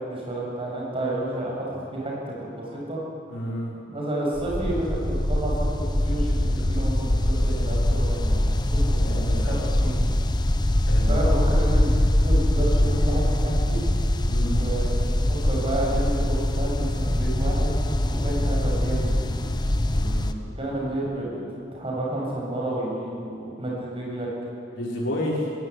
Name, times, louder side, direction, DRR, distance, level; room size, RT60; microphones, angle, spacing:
voice 1, 0.0-3.0 3.9-10.0 11.1-11.9 12.2-14.0 14.5-14.9 15.2-17.8 18.0-19.3 20.5-21.3 21.7-24.3, right 1 dB, 30° right, -3 dB, 7.2 m, -30 dB
voice 2, 3.3-3.8 9.0-9.6 10.9-11.6 14.3-14.6 19.9-20.3 24.7-25.5, left 1 dB, 85° left, -4 dB, 5.9 m, -31 dB
sound 1, 4.4-20.3, left 1 dB, 25° left, 0.9 m, -23 dB
19.0 x 17.0 x 9.9 m, 2.4 s
head